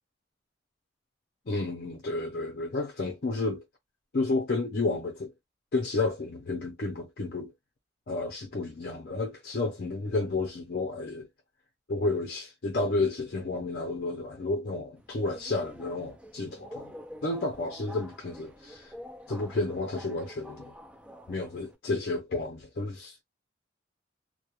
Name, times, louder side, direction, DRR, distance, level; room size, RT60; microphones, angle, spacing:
voice 1, 1.5-3.6 4.1-5.3 5.7-7.5 8.1-11.3 11.9-16.9 17.2-18.9 19.3-20.7 21.3-23.2, left 3 dB, 55° left, 0.5 m, -31 dB
Subway metro underground, 15.0-21.7, equal, 5° right, 0.3 m, -48 dB
2.3 x 2.1 x 2.9 m
head